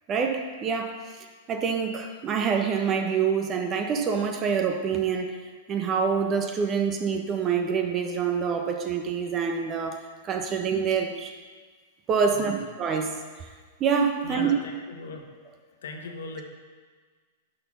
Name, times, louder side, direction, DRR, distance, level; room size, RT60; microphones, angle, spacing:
voice 1, 0.1-5.4 5.7-11.3 12.1-13.5 13.8-14.5, right 6 dB, 30° right, 5 dB, 1.1 m, -26 dB
voice 2, 14.2-15.2 15.7-16.4, left 4 dB, 75° left, 2 dB, 1.4 m, -39 dB
11.0 x 4.5 x 5.5 m, 1.5 s
hypercardioid pair, 110°, 0 cm